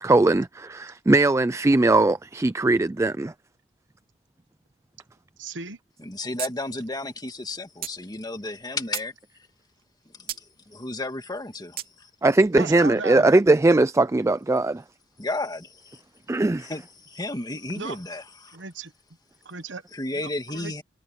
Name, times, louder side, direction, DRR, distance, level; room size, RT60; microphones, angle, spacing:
voice 1, 0.0-3.3 12.2-14.8 16.3-16.7, right 2 dB, 15° right, 0.3 m, -20 dB
voice 2, 5.4-5.8 12.5-13.3 17.7-18.0 18.5-18.9 19.4-19.8 20.1-20.3 20.5-20.8, right 4 dB, 85° right, 1.3 m, -35 dB
voice 3, 6.0-9.1 10.1-12.1 15.2-16.0 16.6-18.6 19.9-20.8, left 2 dB, 20° left, 2.0 m, -33 dB
sound 1, 6.4-6.5 6.8-6.9 7.8-8.0 8.6-9.1 10.3-10.4 11.8-11.9, right 12 dB, 55° right, 2.4 m, -33 dB
head